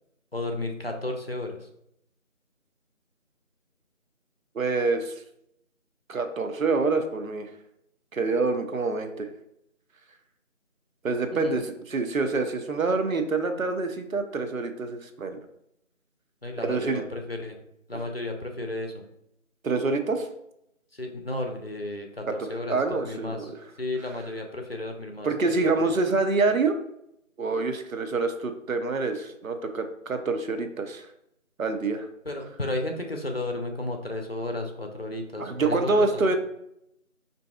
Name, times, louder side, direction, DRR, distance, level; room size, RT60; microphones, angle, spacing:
voice 1, 0.3-1.7 11.3-11.6 16.4-17.6 17.9-18.9 20.9-23.5 23.8-25.9 32.3-36.2, left 2 dB, 50° left, 3 dB, 0.5 m, -33 dB
voice 2, 4.5-5.2 6.1-7.5 8.1-9.3 11.0-15.4 16.6-17.0 19.6-20.3 22.4-23.5 25.2-26.7 27.4-31.1 31.6-32.1 35.4-36.4, right 3 dB, 75° right, 7 dB, 0.7 m, -26 dB
5.1 x 2.7 x 2.3 m, 0.78 s
figure-of-eight pair, 170°, 41 cm